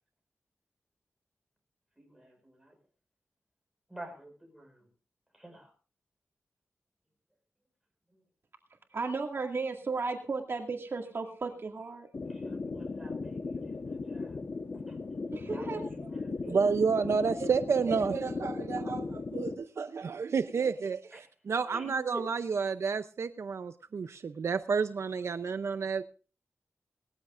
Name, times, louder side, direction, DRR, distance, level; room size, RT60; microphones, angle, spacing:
voice 1, 2.0-2.7 3.9-4.9 5.3-5.7 12.2-14.4 14.9-15.0 15.5-16.6 21.1-21.2 21.7-22.2, right 1 dB, 5° right, 3 dB, 5.1 m, -48 dB
voice 2, 8.9-12.1 15.3-16.1, right 4 dB, 55° right, 3 dB, 2.1 m, -35 dB
sound 1, 12.1-19.5, left 3 dB, 50° left, 1.1 m, -37 dB
voice 3, 16.4-26.0, right 5 dB, 70° right, 11 dB, 0.6 m, -30 dB
19.5 x 14.5 x 2.5 m, 0.35 s
wide cardioid pair, 120°, 5 cm